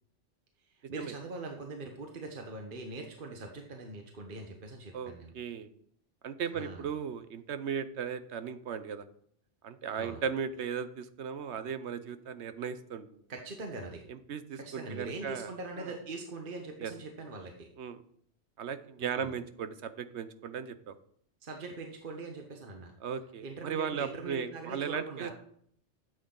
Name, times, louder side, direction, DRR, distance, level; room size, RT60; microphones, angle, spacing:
voice 1, 0.7-5.3 6.6-6.8 10.0-10.2 13.3-14.0 14.6-17.7 19.0-19.3 21.4-22.9 23.4-25.3, right 3 dB, 50° right, 2 dB, 1.3 m, -42 dB
voice 2, 4.9-5.7 6.2-9.0 9.6-13.1 14.1-15.5 15.8-15.9 16.8-16.9 17.8-18.0 18.6-20.9 23.0-25.3, right 7 dB, 70° right, 11 dB, 1.0 m, -37 dB
12.5 x 8.0 x 3.8 m, 0.65 s
omnidirectional pair, 1.2 m